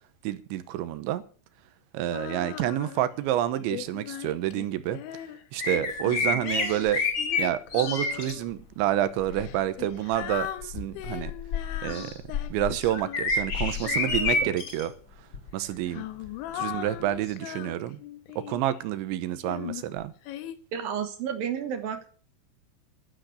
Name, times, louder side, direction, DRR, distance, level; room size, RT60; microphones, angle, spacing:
voice 1, 0.2-1.2 1.9-5.0 5.5-7.0 7.4-11.3 11.8-12.1 12.5-14.9 15.5-16.1 16.5-18.0 18.4-20.1, right 13 dB, 85° right, 3.3 m, -28 dB
Female singing, 2.1-3.2 3.7-8.5 9.3-14.8 15.6-18.8 19.4-20.6, left 12 dB, 85° left, 3.5 m, -39 dB
sound 1, 5.6-8.3 9.2-9.5 10.2-14.8 15.3-15.5 17.3-17.4, left 4 dB, 40° left, 1.9 m, -29 dB
voice 2, 20.7-22.1, right 8 dB, 65° right, 2.5 m, -31 dB
12.5 x 10.0 x 6.6 m
omnidirectional pair, 5.3 m